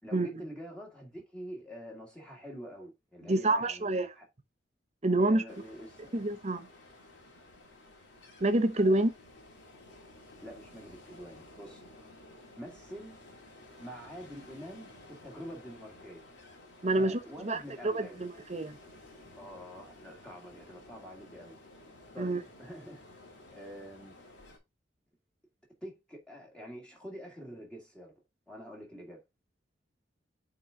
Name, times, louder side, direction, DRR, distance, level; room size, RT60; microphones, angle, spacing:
voice 1, 0.0-4.3 5.2-6.2 8.8-9.1 10.4-11.9 12.6-13.2 13.8-16.3 16.9-18.3 19.4-21.6 22.1-23.0 23.5-24.1 25.8-28.1 28.5-29.2, equal, 5° left, 1.9 m, -46 dB
voice 2, 3.2-4.1 5.0-5.4 6.1-6.7 8.4-9.1 16.8-18.8 22.2-22.4, right 2 dB, 35° right, 0.8 m, -28 dB
Ocean, 5.5-24.6, left 2 dB, 70° left, 2.4 m, -54 dB
8.7 x 3.9 x 3.6 m
head